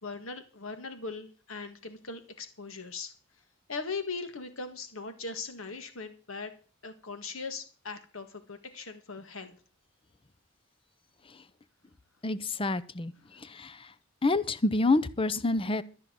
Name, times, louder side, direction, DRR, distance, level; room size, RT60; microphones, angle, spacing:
voice 1, 0.0-3.1 3.7-6.5 6.8-9.6, left 4 dB, 75° left, 9 dB, 1.8 m, -39 dB
voice 2, 12.2-13.1 13.5-13.7 14.2-15.8, left 2 dB, 25° left, 15 dB, 0.7 m, -27 dB
13.5 x 5.8 x 9.1 m, 0.39 s
head